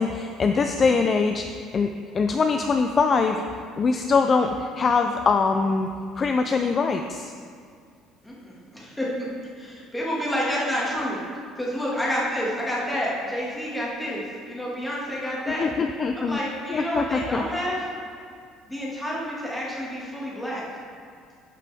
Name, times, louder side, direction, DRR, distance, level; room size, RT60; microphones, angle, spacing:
voice 1, 0.0-1.9 2.1-3.4 3.8-5.9 6.2-7.3 15.6-16.4 16.7-17.4, left 4 dB, 30° left, 5 dB, 0.3 m, -23 dB
voice 2, 8.2-9.1 9.6-11.2 11.6-15.7 16.2-17.9 18.7-20.8, equal, 5° left, -6 dB, 1.8 m, -29 dB
11.5 x 5.6 x 3.5 m, 2.2 s
cardioid pair, 145°, 0 cm